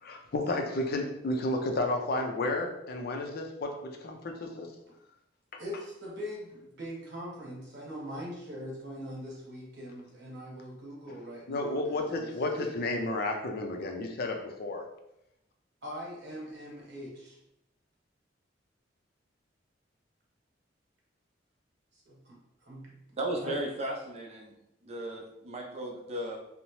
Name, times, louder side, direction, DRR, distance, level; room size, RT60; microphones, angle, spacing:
voice 1, 0.0-4.7 5.5-5.6 11.5-14.8, left 2 dB, 55° left, 3 dB, 0.4 m, -32 dB
voice 2, 5.6-12.3 12.5-12.7 15.8-17.4 22.1-22.4 22.7-23.0 23.4-23.5, equal, 65° right, -4 dB, 1.0 m, -42 dB
voice 3, 23.2-24.5 24.8-26.4, right 1 dB, 35° right, 0 dB, 0.5 m, -35 dB
2.8 x 2.0 x 3.0 m, 0.84 s
head